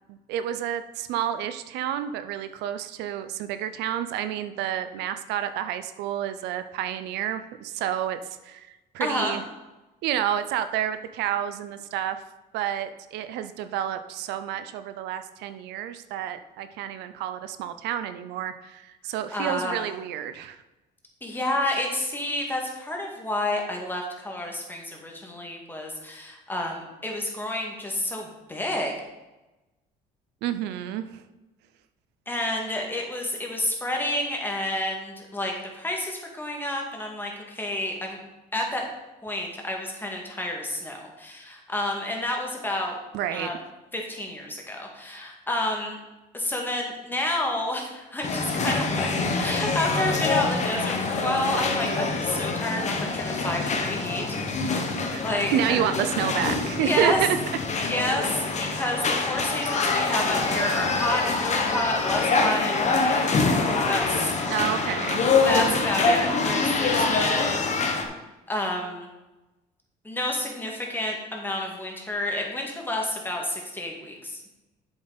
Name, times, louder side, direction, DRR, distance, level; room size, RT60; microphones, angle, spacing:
voice 1, 0.1-9.4 10.0-12.2 12.5-20.6 30.4-31.2 43.1-43.5 55.1-55.2 55.5-57.4 58.7-58.8 64.5-65.2, right 10 dB, 90° right, 11 dB, 0.6 m, -29 dB
voice 2, 9.0-9.4 19.3-19.8 21.2-28.9 32.3-38.2 38.5-38.9 39.2-43.0 43.3-43.5 43.9-46.0 46.3-49.1 49.4-54.6 55.2-55.8 56.8-57.2 57.8-63.4 63.9-64.3 65.4-68.0 68.5-69.1 70.0-74.5, left 1 dB, 10° left, 0 dB, 1.9 m, -30 dB
sound 1, 48.2-68.0, left 3 dB, 45° left, 1.3 m, -25 dB
7.9 x 7.2 x 4.0 m, 1.0 s
cardioid pair, 110°, 17 cm